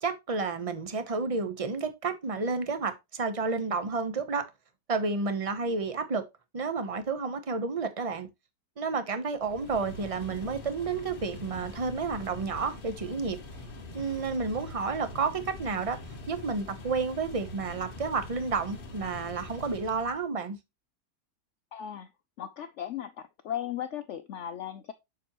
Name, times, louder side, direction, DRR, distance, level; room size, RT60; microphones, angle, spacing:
voice 1, 0.0-4.5 4.9-6.2 6.5-8.3 8.8-13.4 13.9-16.0 16.3-20.6, right 4 dB, 35° right, 0.6 m, -31 dB
sound 1, 9.4-20.2, left 2 dB, 35° left, 1.3 m, -44 dB
voice 2, 21.7-22.1 22.4-23.1 23.4-24.9, left 10 dB, 90° left, 0.6 m, -36 dB
7.2 x 6.1 x 3.0 m
omnidirectional pair, 1.8 m